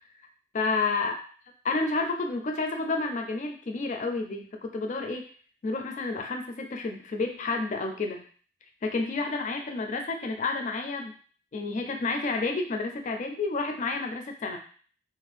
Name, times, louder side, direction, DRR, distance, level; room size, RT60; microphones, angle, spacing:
voice 1, 0.5-1.2 1.6-5.3 5.6-8.3 8.8-11.2 11.5-14.6, left 3 dB, 45° left, 4 dB, 0.4 m, -30 dB
2.6 x 2.2 x 3.3 m, 0.43 s
head